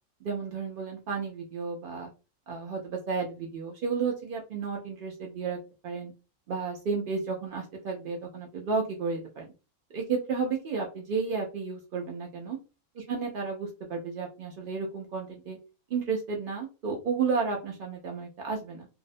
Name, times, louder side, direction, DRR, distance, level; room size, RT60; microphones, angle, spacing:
voice 1, 0.2-2.1 2.5-5.6 5.8-6.1 6.5-9.5 9.9-12.6 13.0-15.6 15.9-18.9, right 5 dB, 80° right, 0 dB, 0.4 m, -32 dB
2.7 x 2.0 x 2.5 m, 0.31 s
omnidirectional pair, 1.5 m